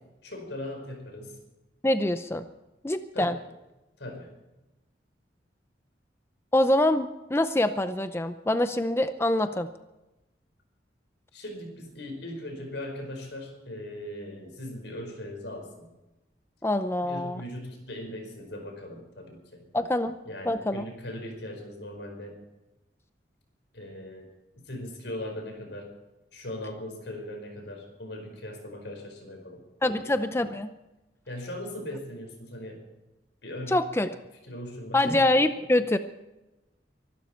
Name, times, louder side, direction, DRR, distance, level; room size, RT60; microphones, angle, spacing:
voice 1, 0.2-1.4 3.1-3.4 4.0-4.3 11.3-15.9 17.0-19.6 20.2-22.3 23.7-24.3 24.6-25.9 26.3-30.4 31.3-32.8 33.4-33.8 34.5-35.3, left 1 dB, 80° left, 4 dB, 5.0 m, -39 dB
voice 2, 1.8-2.5 2.8-3.4 6.5-9.7 16.6-17.4 19.7-20.2 20.5-20.8 29.8-30.7 33.7-34.1 34.9-36.0, left 1 dB, 15° left, 10 dB, 0.5 m, -25 dB
24.0 x 12.5 x 4.5 m, 1.0 s
head